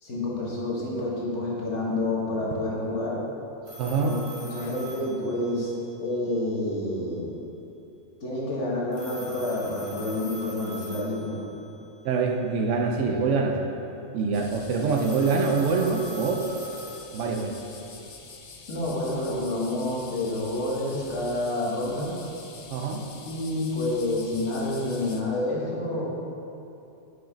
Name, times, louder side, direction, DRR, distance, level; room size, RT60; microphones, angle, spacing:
voice 1, 0.0-3.2 4.0-4.1 4.5-5.7 6.0-7.3 8.2-11.4 18.7-22.1 23.1-26.0, left 1 dB, 75° left, -5 dB, 1.7 m, -28 dB
sound 1, 3.7-6.0 8.9-11.8 14.9-17.9, equal, 50° right, 1.4 m, -42 dB
voice 2, 3.8-4.2 12.0-13.7 14.1-16.4 17.1-17.6 22.7-23.0, right 4 dB, 85° right, 1 dB, 0.9 m, -25 dB
sound 2, 14.3-25.2, left 4 dB, 50° left, 0.4 m, -46 dB
6.2 x 5.0 x 5.0 m, 2.8 s
omnidirectional pair, 1.2 m